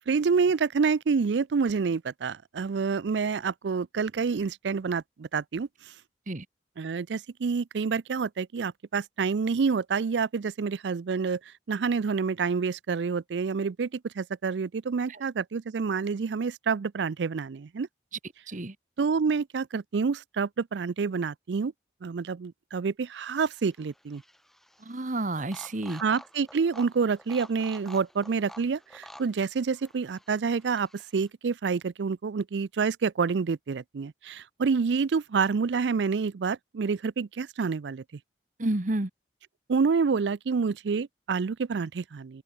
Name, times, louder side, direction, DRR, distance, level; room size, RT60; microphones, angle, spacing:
voice 1, 0.1-5.7 6.8-11.4 11.7-17.9 19.0-21.7 22.0-24.2 26.0-38.0 39.7-42.4, right 5 dB, 80° right, 0.5 m, -28 dB
sound 1, 23.1-31.3, equal, ahead, 4.7 m, -51 dB
voice 2, 24.8-26.0 38.6-39.1, right 2 dB, 45° right, 1.4 m, -30 dB
open air
head